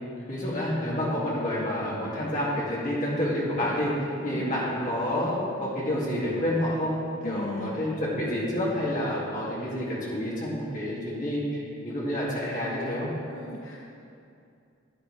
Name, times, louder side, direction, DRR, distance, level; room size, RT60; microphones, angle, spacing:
voice 1, 0.3-6.9 7.2-13.1, left 1 dB, 40° left, -6 dB, 2.3 m, -29 dB
voice 2, 7.2-7.7 13.3-13.8, left 1 dB, 70° left, -1 dB, 0.7 m, -37 dB
10.5 x 9.8 x 3.3 m, 2.5 s
head